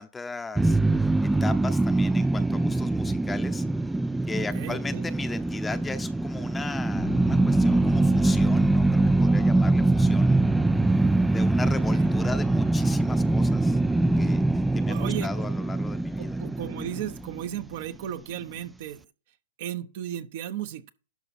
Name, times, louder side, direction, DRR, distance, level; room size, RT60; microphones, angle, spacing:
voice 1, 0.0-3.6 4.3-10.4 11.2-13.8 14.2-16.4, left 4 dB, 10° left, 0.8 m, -37 dB
sound 1, 0.6-17.7, right 2 dB, 5° right, 0.4 m, -23 dB
voice 2, 4.4-5.0 10.5-11.6 11.9-12.1 14.9-15.5 16.2-19.1 19.6-20.9, right 11 dB, 60° right, 1.0 m, -36 dB
Piano, 7.0-17.8, left 13 dB, 85° left, 1.3 m, -42 dB
12.0 x 5.9 x 4.3 m
hypercardioid pair, 130°, 0 cm